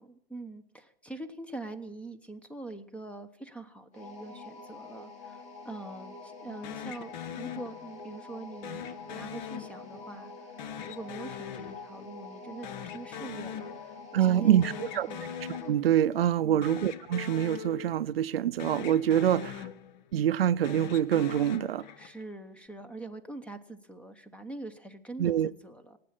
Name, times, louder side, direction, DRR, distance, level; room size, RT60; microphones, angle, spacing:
voice 1, 0.0-8.8 9.1-10.5 10.9-15.3 16.4-16.7 22.0-26.0, right 2 dB, 5° left, 0.9 m, -44 dB
sound 1, 3.9-15.8, left 3 dB, 25° left, 3.1 m, -46 dB
sound 2, 6.6-8.2 8.6-10.2 10.6-12.4 12.6-14.2 14.4-16.2 16.6-18.3 18.6-20.2 20.6-22.3, left 9 dB, 50° left, 1.1 m, -42 dB
voice 2, 14.1-15.1 15.5-19.7 20.1-21.8 25.2-25.5, right 10 dB, 85° right, 0.6 m, -25 dB
18.0 x 8.5 x 8.7 m
hypercardioid pair, 135°, 29 cm